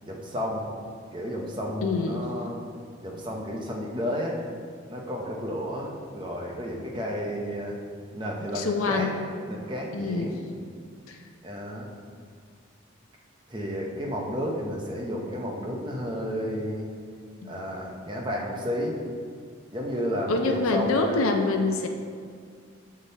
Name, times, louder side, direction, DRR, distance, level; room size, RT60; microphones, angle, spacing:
voice 1, 0.0-0.6 1.1-2.6 3.0-4.4 4.9-7.8 8.1-9.1 9.5-10.4 11.4-11.9 13.5-16.9 17.4-18.9 19.7-21.2, equal, 25° right, -2 dB, 0.8 m, -32 dB
voice 2, 1.8-2.2 8.5-9.3 9.9-10.3 11.1-11.2 17.4-17.5 20.3-21.9, left 3 dB, 90° left, 4 dB, 0.5 m, -26 dB
8.2 x 3.7 x 4.1 m, 2.1 s
head